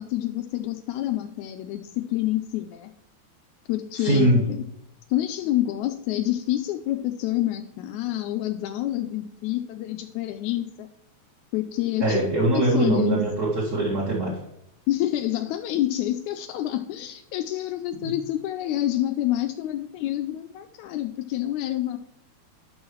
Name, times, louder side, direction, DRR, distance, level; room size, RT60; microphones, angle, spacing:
voice 1, 0.0-2.9 3.7-4.6 5.1-10.9 11.5-13.2 14.9-22.0, left 13 dB, 85° left, 7 dB, 1.9 m, -28 dB
voice 2, 4.0-4.4 12.0-14.3 18.0-18.1, right 2 dB, 35° right, -8 dB, 2.2 m, -22 dB
11.0 x 6.2 x 3.1 m, 0.79 s
omnidirectional pair, 3.3 m